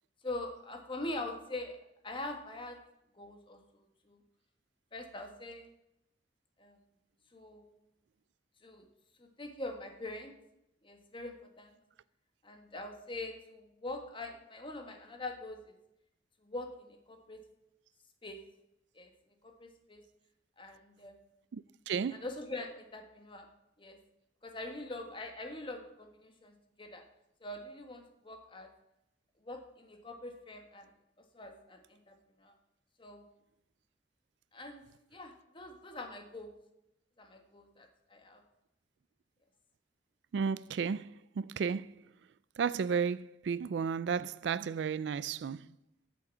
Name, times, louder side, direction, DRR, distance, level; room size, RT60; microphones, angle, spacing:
voice 1, 0.2-1.8 2.0-2.8 3.1-3.6 4.1-4.2 4.9-5.7 6.6-6.8 7.3-7.7 8.6-8.9 9.2-10.3 10.8-11.7 12.4-15.7 16.4-17.4 18.2-18.4 18.9-19.1 19.4-20.0 20.6-21.2 22.1-23.5 23.8-24.0 24.4-27.0 27.4-28.7 29.4-30.9 31.3-32.5 33.0-33.2 34.5-34.8 35.1-36.5 37.2-38.4, left 2 dB, 30° left, 1.5 m, -43 dB
voice 2, 21.5-22.2 40.3-42.0 42.6-45.7, right 6 dB, 85° right, 0.4 m, -33 dB
8.6 x 7.6 x 8.3 m
head